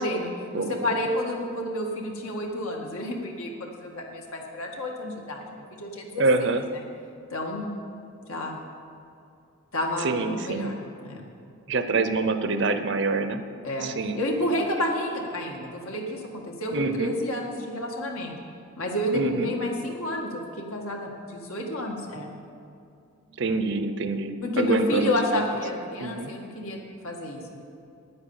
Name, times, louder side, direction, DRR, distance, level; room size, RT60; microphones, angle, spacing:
voice 1, 0.0-6.5 7.3-7.7 8.3-8.6 9.7-11.3 13.6-18.4 18.8-22.3 24.4-27.6, left 1 dB, 80° left, 0 dB, 1.9 m, -30 dB
voice 2, 6.2-6.6 10.0-10.7 11.7-13.4 13.8-14.2 16.7-17.1 19.1-19.5 23.3-25.5 26.0-26.3, right 3 dB, 55° right, 9 dB, 0.7 m, -26 dB
9.8 x 9.7 x 7.2 m, 2.5 s
head